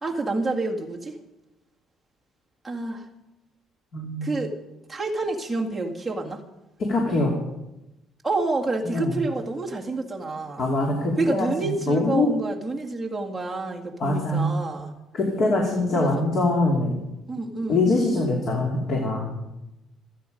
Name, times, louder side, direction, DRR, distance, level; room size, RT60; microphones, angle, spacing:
voice 1, 0.0-1.2 2.6-3.0 4.2-4.5 4.9-6.4 8.2-10.7 11.2-14.9 15.9-16.2 17.3-17.9, right 3 dB, 5° right, -3 dB, 2.0 m, -28 dB
voice 2, 3.9-4.3 6.8-7.3 8.8-9.2 10.6-11.5 11.9-12.3 14.0-14.5 15.1-17.0 17.7-19.4, left 2 dB, 40° left, 0 dB, 2.7 m, -23 dB
26.5 x 9.3 x 5.3 m, 0.95 s
cardioid pair, 180°, 0 cm